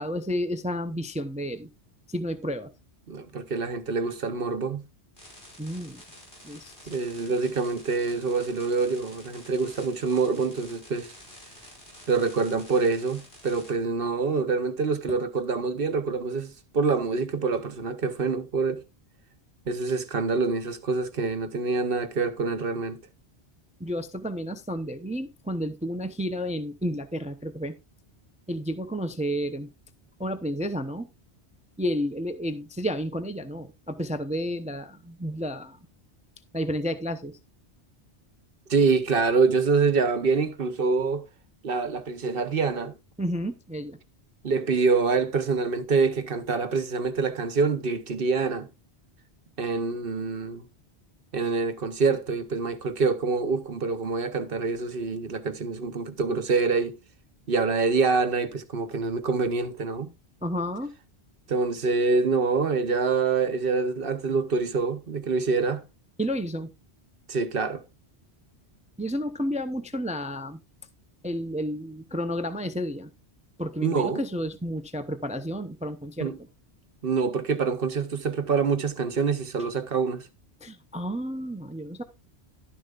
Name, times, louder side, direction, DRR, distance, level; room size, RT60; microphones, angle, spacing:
voice 1, 0.0-1.7 2.1-2.7 5.6-6.0 6.4-6.7 23.8-27.7 28.5-29.7 30.2-31.1 31.8-35.8 36.5-37.4 43.2-44.0 60.4-60.9 66.2-66.7 69.0-70.6 71.2-73.1 73.6-76.3 80.6-82.0, equal, 10° right, 0.6 m, -31 dB
voice 2, 3.1-4.8 6.9-11.1 12.1-18.8 19.7-23.0 38.7-41.2 41.6-42.9 44.4-48.7 49.6-50.7 51.3-56.9 57.5-60.1 61.5-65.8 67.3-67.8 73.8-74.2 76.2-76.4 77.0-80.3, right 4 dB, 55° right, 1.1 m, -26 dB
sound 1, 5.2-13.7, left 1 dB, 55° left, 5.5 m, -49 dB
12.0 x 10.0 x 2.4 m
omnidirectional pair, 1.1 m